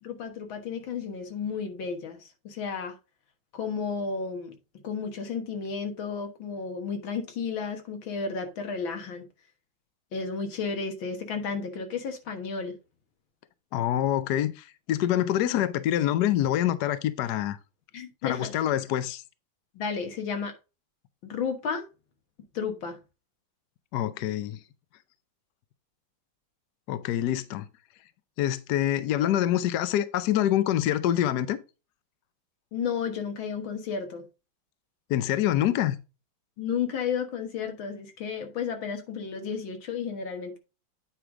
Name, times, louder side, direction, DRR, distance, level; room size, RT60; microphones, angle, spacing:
voice 1, 0.0-3.0 3.5-4.5 4.8-9.3 10.1-12.8 17.9-18.5 19.7-20.5 21.2-21.8 22.5-23.0 32.7-34.2 36.6-40.6, left 6 dB, 85° left, 2.2 m, -32 dB
voice 2, 13.7-17.6 18.2-19.2 23.9-24.6 26.9-27.7 28.4-31.6 35.1-36.0, left 12 dB, 70° left, 1.1 m, -26 dB
9.0 x 4.8 x 3.7 m
omnidirectional pair, 2.1 m